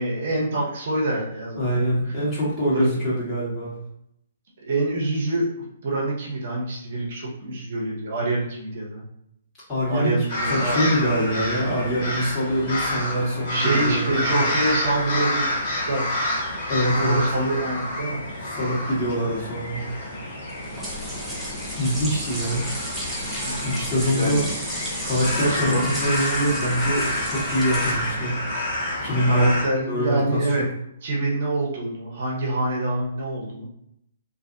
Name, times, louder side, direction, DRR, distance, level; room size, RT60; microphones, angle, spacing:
voice 1, 0.0-2.1 2.7-3.0 4.6-9.0 9.9-10.9 11.6-11.9 13.5-15.5 15.9-16.1 16.9-18.2 23.1-24.4 25.4-25.9 28.5-28.6 29.3-30.7 31.0-33.7, right 2 dB, 55° right, -2 dB, 0.8 m, -26 dB
voice 2, 1.6-3.7 9.7-10.2 10.4-14.5 16.7-17.3 18.5-19.8 21.8-22.6 23.6-24.4 25.0-28.4 28.7-29.6 29.9-30.7, equal, 25° left, -8 dB, 1.4 m, -24 dB
sound 1, 10.3-29.6, left 1 dB, 45° left, 1.3 m, -29 dB
sound 2, 20.5-28.3, equal, ahead, 0.7 m, -33 dB
2.5 x 2.3 x 2.7 m, 0.74 s
figure-of-eight pair, 125°, 0 cm